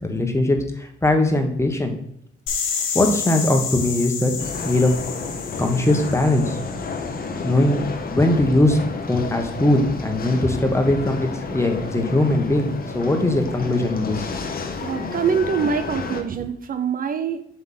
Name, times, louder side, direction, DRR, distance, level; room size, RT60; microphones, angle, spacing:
voice 1, 0.0-1.9 2.9-4.3 4.6-4.9 5.6-6.6 7.4-7.8 8.1-8.8 9.1-12.7 12.9-14.2, left 1 dB, 15° left, 5 dB, 1.4 m, -20 dB
sound 1, 2.5-7.2, left 6 dB, 85° left, 1.4 m, -30 dB
sound 2, 4.4-16.2, left 4 dB, 50° left, 1.1 m, -31 dB
voice 2, 14.8-17.4, right 6 dB, 45° right, 8 dB, 0.6 m, -24 dB
7.5 x 3.5 x 5.9 m, 0.71 s
cardioid pair, 90°, 20 cm